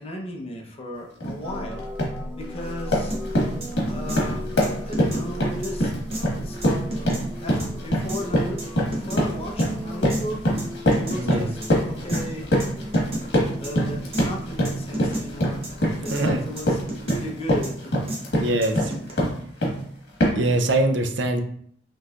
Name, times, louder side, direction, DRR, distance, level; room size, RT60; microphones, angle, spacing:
voice 1, 0.0-1.8 2.4-3.2 3.8-5.9 6.2-6.8 7.2-10.4 10.9-11.6 11.8-12.5 13.6-17.9, left 1 dB, 30° left, 0 dB, 0.9 m, -36 dB
sound 1, 1.2-1.4 1.8-2.2 2.6-19.8 20.2-20.5, equal, 70° left, 1.5 m, -24 dB
sound 2, 1.4-17.4, equal, ahead, 0.5 m, -37 dB
sound 3, 3.1-3.2 3.6-3.7 4.1-4.2 4.6-5.3 5.6-5.7 6.1-6.2 6.6-7.2 7.6-7.7 8.1-8.2 8.6-9.2 9.6-9.7 10.1-10.2 10.6-11.2 11.6-11.7 12.1-12.2 12.6-12.7 12.9-13.3 13.6-13.7 14.1-14.3 14.7-15.3 15.6-15.7 16.1-16.2 16.6-17.2 17.6-17.7 18.1-18.2 18.6-19.1, right 1 dB, 30° right, 0.9 m, -32 dB
voice 2, 11.1-11.5 16.1-16.4 18.4-18.9 20.3-21.4, right 2 dB, 80° right, 6 dB, 0.6 m, -23 dB
5.5 x 3.2 x 2.4 m, 0.62 s
head